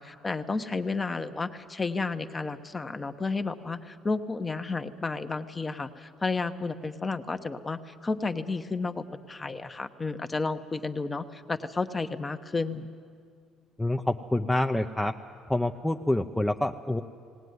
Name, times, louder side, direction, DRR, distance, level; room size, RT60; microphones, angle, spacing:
voice 1, 0.0-12.9, left 3 dB, 20° left, 9 dB, 1.0 m, -32 dB
voice 2, 13.8-15.2 15.5-17.0, left 1 dB, 5° left, 4 dB, 0.6 m, -27 dB
19.0 x 18.5 x 9.5 m, 2.2 s
cardioid pair, 105°, 0 cm